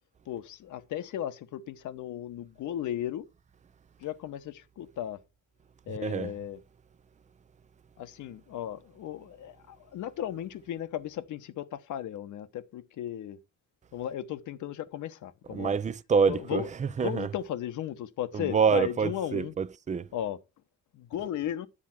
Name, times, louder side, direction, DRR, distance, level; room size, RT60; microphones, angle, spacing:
voice 1, 0.3-3.3 4.0-5.2 5.9-6.6 8.0-13.4 13.9-15.8 16.3-16.7 17.0-19.5 20.1-20.4 20.9-21.7, left 11 dB, 75° left, 1.0 m, -35 dB
voice 2, 6.0-6.3 15.5-17.3 18.3-20.1, right 6 dB, 25° right, 0.5 m, -27 dB
10.0 x 7.3 x 4.3 m
cardioid pair, 90°, 30 cm